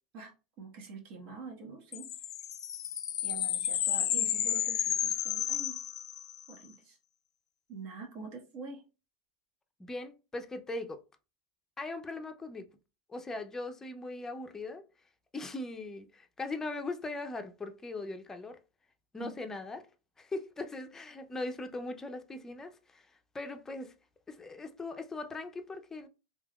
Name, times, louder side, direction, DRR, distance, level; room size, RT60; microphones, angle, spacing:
voice 1, 0.1-2.1 3.2-5.8 6.5-7.0 7.7-8.8 19.2-19.3, right 4 dB, 55° right, 1.3 m, -45 dB
sound 1, 1.9-6.5, left 10 dB, 75° left, 0.4 m, -32 dB
voice 2, 9.8-11.0 11.8-12.6 13.1-14.8 15.3-18.6 19.1-19.8 20.2-23.1 23.3-23.9 24.3-26.1, left 2 dB, 15° left, 0.5 m, -40 dB
3.4 x 2.7 x 2.3 m
hypercardioid pair, 100°, 3 cm